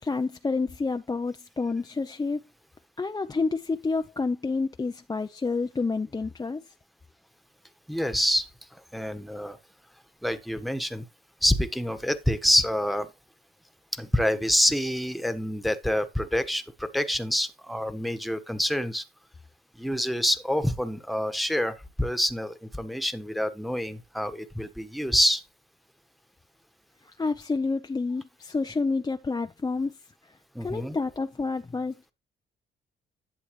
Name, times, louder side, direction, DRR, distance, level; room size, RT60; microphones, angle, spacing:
voice 1, 0.0-2.4 3.0-6.7 27.0-30.0 30.2-30.3 30.6-31.9, left 4 dB, 20° left, 0.6 m, -29 dB
voice 2, 7.9-9.6 10.2-11.0 11.4-13.1 13.9-19.0 19.7-25.4 30.5-31.0, equal, ahead, 1.4 m, -27 dB
11.5 x 8.0 x 3.2 m
cardioid pair, 90°, 20 cm